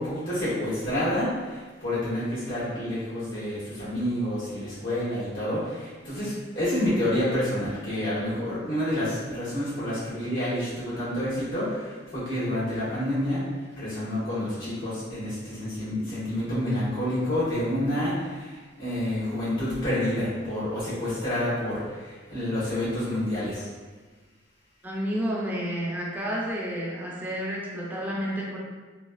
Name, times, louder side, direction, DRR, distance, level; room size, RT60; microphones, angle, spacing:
voice 1, 0.0-13.4 13.8-23.7, left 1 dB, 75° left, -11 dB, 1.5 m, -28 dB
voice 2, 24.8-28.6, equal, 10° right, -5 dB, 0.5 m, -30 dB
3.1 x 2.3 x 2.4 m, 1.3 s
head